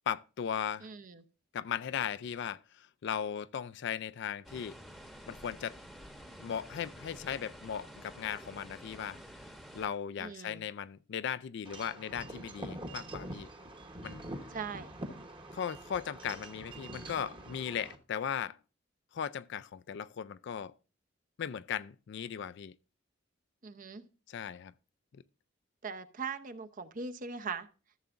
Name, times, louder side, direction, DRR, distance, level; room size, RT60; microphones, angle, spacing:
voice 1, 0.1-0.9 1.5-4.8 5.3-5.8 6.4-9.2 9.7-13.5 14.0-14.2 15.5-18.6 19.1-20.7 21.4-22.8 24.3-24.7 25.1-25.2, left 8 dB, 65° left, 0.4 m, -37 dB
voice 2, 0.8-1.2 10.2-10.6 14.5-14.9 23.6-24.1 25.8-27.7, right 5 dB, 45° right, 0.7 m, -40 dB
sound 1, 4.4-9.9, equal, ahead, 0.9 m, -50 dB
Wind chime / Wind, 11.6-17.9, right 1 dB, 25° right, 1.0 m, -45 dB
14.0 x 6.9 x 2.5 m
head